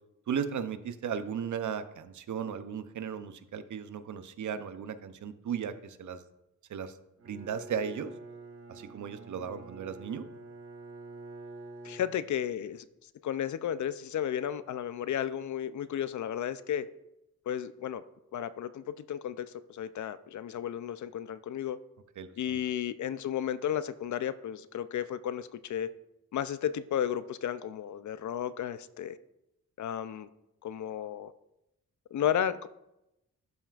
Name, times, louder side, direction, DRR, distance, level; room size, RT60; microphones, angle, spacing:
voice 1, 0.3-6.2 6.7-7.0 7.2-8.1 8.7-10.2 22.2-22.6, right 7 dB, 70° right, 11 dB, 0.6 m, -36 dB
Bowed string instrument, 7.2-12.6, right 2 dB, 45° right, 1.0 m, -47 dB
voice 2, 11.8-12.8 13.2-16.9 17.5-18.0 18.3-21.8 22.4-25.9 26.3-29.2 29.8-30.3 30.6-31.3 32.1-32.7, left 9 dB, 65° left, 14 dB, 0.5 m, -33 dB
12.0 x 5.7 x 2.4 m, 0.87 s
cardioid pair, 80°, 31 cm